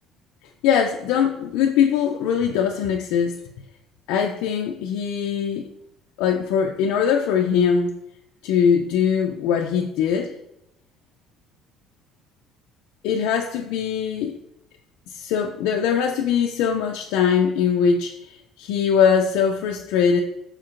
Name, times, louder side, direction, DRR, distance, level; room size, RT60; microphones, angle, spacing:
voice 1, 0.6-3.4 4.1-5.7 6.2-7.9 8.4-10.3 13.0-14.3 15.1-20.2, left 7 dB, 85° left, 2 dB, 0.3 m, -21 dB
4.8 x 4.4 x 2.5 m, 0.85 s
cardioid pair, 175°, 0 cm